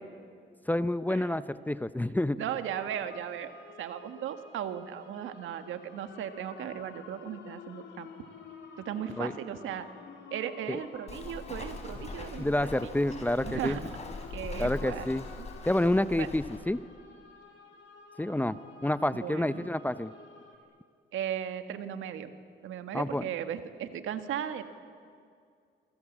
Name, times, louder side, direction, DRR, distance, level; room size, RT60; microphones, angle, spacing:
voice 1, 0.7-2.4 9.2-9.3 10.7-10.8 12.4-13.8 14.6-15.2 15.7-16.8 18.2-20.1 22.9-23.2, left 1 dB, 10° left, 14 dB, 0.7 m, -28 dB
voice 2, 2.4-3.5 3.8-8.1 8.8-9.9 10.3-12.7 13.4-13.8 14.3-15.1 15.4-15.5 16.1-16.3 19.1-19.7 21.1-22.3 22.6-24.6, right 9 dB, 80° right, 8 dB, 1.7 m, -36 dB
sound 1, 2.7-20.6, left 6 dB, 70° left, 3.4 m, -51 dB
Walk footsteps, 11.1-16.6, left 3 dB, 35° left, 4.6 m, -42 dB
28.0 x 23.0 x 7.4 m, 2.2 s
cardioid pair, 90°, 20 cm